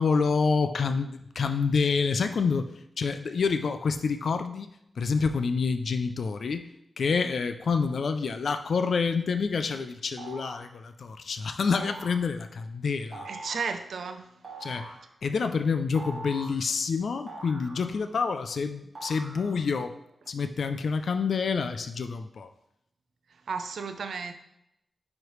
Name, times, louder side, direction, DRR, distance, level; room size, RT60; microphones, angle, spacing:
voice 1, 0.0-4.7 5.0-6.7 7.0-13.3 14.6-14.9 15.2-19.9 20.3-22.5, left 5 dB, 60° left, 8 dB, 0.3 m, -27 dB
sound 1, 10.2-10.7 11.7-12.3 13.1-13.7 14.4-15.1 15.9-16.6 17.3-18.2 18.9-19.8, right 2 dB, 35° right, 0.8 m, -43 dB
voice 2, 13.3-14.4 23.5-24.3, right 5 dB, 75° right, 7 dB, 0.5 m, -33 dB
9.5 x 3.2 x 3.1 m, 0.82 s
wide cardioid pair, 160°, 0 cm